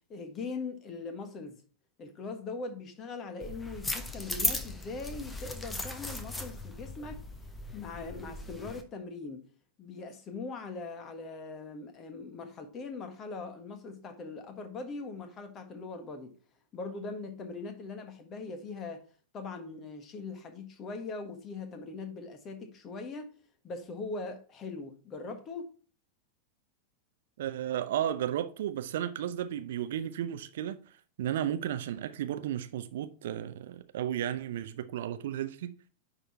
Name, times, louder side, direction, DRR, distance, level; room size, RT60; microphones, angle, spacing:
voice 1, 0.1-1.6 2.0-7.2 7.7-9.5 9.8-16.4 16.7-19.0 19.3-23.3 23.6-25.7, left 3 dB, 30° left, 1.5 m, -41 dB
sound 1, 3.4-8.8, left 2 dB, 10° left, 1.0 m, -37 dB
voice 2, 27.4-35.7, right 11 dB, 55° right, 0.6 m, -34 dB
9.9 x 4.1 x 4.3 m
figure-of-eight pair, 90°, 0 cm